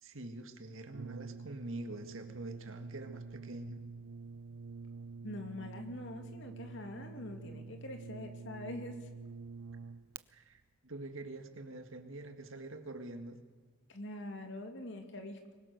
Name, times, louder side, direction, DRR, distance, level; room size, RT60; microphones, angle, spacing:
voice 1, 0.0-3.8 10.3-13.4, right 2 dB, 70° right, 7 dB, 2.0 m, -45 dB
Brass instrument, 0.9-10.2, right 4 dB, 90° right, 0.6 m, -47 dB
voice 2, 5.2-9.3 13.9-15.5, left 1 dB, 60° left, 5 dB, 2.7 m, -44 dB
24.0 x 21.0 x 6.7 m, 1.5 s
head